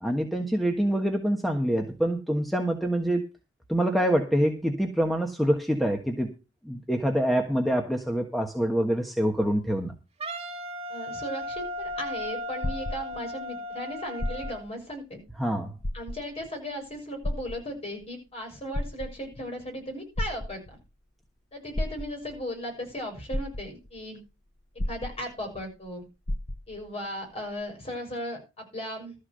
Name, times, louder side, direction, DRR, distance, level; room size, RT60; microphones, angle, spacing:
voice 1, 0.0-3.2 3.7-6.3 6.6-9.9 15.4-15.7, equal, ahead, 2 dB, 1.4 m, -26 dB
Wind instrument woodwind instrument, 10.2-14.7, left 1 dB, 30° right, 2.1 m, -36 dB
voice 2, 10.9-15.2 15.9-20.8 21.5-24.2 24.9-26.1 26.7-29.2, equal, 30° left, 2 dB, 6.5 m, -36 dB
sound 1, 11.4-13.5 14.1-14.8 15.2-15.3 15.8-16.5 17.2-18.1 18.6-19.4 20.2-20.9 21.7-22.4 23.0-23.1 23.3-24.0 24.8-25.6 25.9-26.0 26.3-26.9 27.6-27.7, left 1 dB, 55° left, 1.3 m, -33 dB
13.5 x 6.5 x 6.7 m, 0.30 s
head